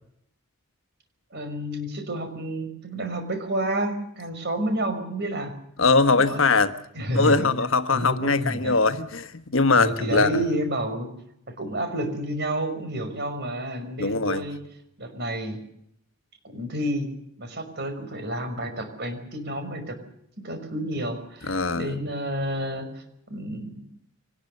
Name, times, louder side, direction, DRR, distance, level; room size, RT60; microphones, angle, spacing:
voice 1, 1.3-5.5 6.1-6.4 6.9-7.5 7.9-8.8 9.7-11.1 11.6-14.6 15.0-15.6 16.4-17.1 17.4-20.0 20.4-23.0 23.3-23.8, right 1 dB, 50° right, 5.6 m, -30 dB
voice 2, 5.8-6.7 7.1-10.4 14.0-14.4 21.5-21.9, left 3 dB, 60° left, 1.4 m, -21 dB
25.0 x 19.5 x 6.7 m
head